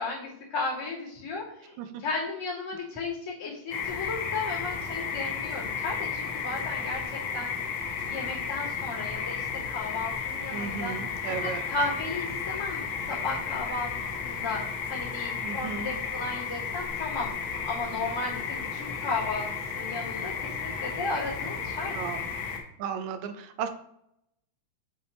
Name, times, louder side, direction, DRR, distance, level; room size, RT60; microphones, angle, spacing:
voice 1, 0.0-7.5 8.0-10.9 11.4-13.9 14.2-19.5 19.7-22.0, left 3 dB, 30° left, -8 dB, 2.9 m, -34 dB
sound 1, 3.7-22.6, left 6 dB, 65° left, 1.3 m, -33 dB
voice 2, 10.5-11.6 15.4-15.9 21.9-22.2 22.8-23.7, right 7 dB, 80° right, 8 dB, 2.0 m, -34 dB
6.4 x 5.5 x 3.1 m, 0.75 s
omnidirectional pair, 3.3 m